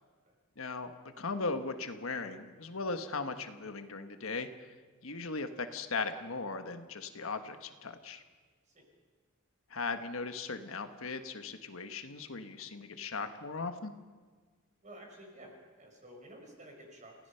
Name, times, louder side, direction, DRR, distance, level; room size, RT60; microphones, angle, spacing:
voice 1, 0.6-0.9 1.2-4.5 5.0-8.2 9.7-13.9, left 4 dB, 75° left, 8 dB, 1.4 m, -38 dB
voice 2, 14.8-17.3, right 1 dB, 35° right, 1 dB, 5.3 m, -52 dB
29.0 x 16.5 x 5.7 m, 1.5 s
head